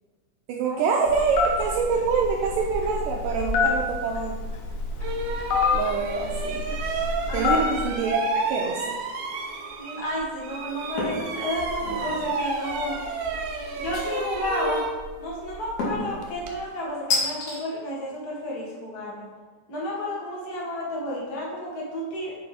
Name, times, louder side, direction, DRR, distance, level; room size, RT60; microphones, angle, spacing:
voice 1, 0.5-4.4 5.7-7.1 7.3-9.0, right 5 dB, 90° right, 0 dB, 1.9 m, -26 dB
Telephone, 1.1-7.9, left 4 dB, 70° left, 2.6 m, -27 dB
sound 1, 4.4-4.5 5.0-10.2 10.4-16.6, right 3 dB, 75° right, 2.7 m, -31 dB
voice 2, 7.3-7.9 9.8-13.0 13.8-14.8 15.2-19.2 19.7-22.4, left 1 dB, 35° left, -4 dB, 1.6 m, -31 dB
sound 2, 11.0-11.3 11.7-12.2 13.9-14.5 15.8-16.2 17.1-17.6, left 3 dB, 55° left, 2.8 m, -28 dB
8.6 x 5.5 x 5.0 m, 1.4 s
omnidirectional pair, 4.6 m